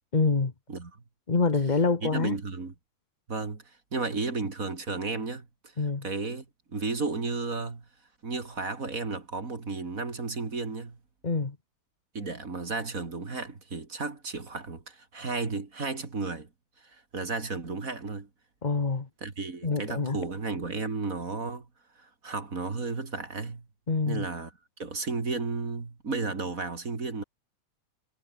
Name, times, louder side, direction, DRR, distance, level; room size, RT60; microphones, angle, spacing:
voice 1, 0.1-0.5 1.3-2.4 5.8-6.1 11.2-11.6 18.6-19.1 19.6-20.2 23.9-24.2, left 4 dB, 40° left, 0.6 m, -26 dB
voice 2, 2.0-2.7 3.3-5.5 6.0-7.8 8.2-11.0 12.1-16.5 16.8-18.3 19.2-21.7 22.0-23.6 24.1-24.5 24.8-27.2, right 3 dB, 30° right, 2.7 m, -33 dB
omnidirectional pair, 3.3 m